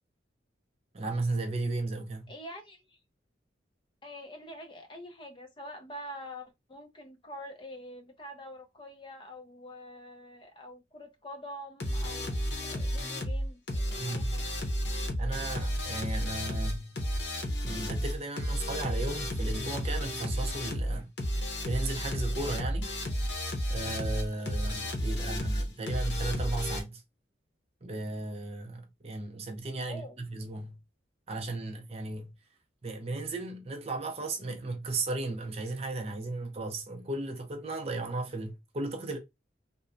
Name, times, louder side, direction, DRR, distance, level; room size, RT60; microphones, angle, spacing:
voice 1, 0.9-2.3 14.0-14.4 15.2-17.0 17.6-21.1 21.7-22.9 23.7-27.0 27.8-30.8 31.3-32.3 32.8-39.2, right 2 dB, 35° right, 0.4 m, -35 dB
voice 2, 2.3-3.0 4.0-14.6 25.2-25.6 29.9-30.2, left 1 dB, 25° left, 0.5 m, -46 dB
sound 1, 11.8-26.8, equal, 75° left, 0.8 m, -32 dB
3.0 x 2.1 x 2.5 m
head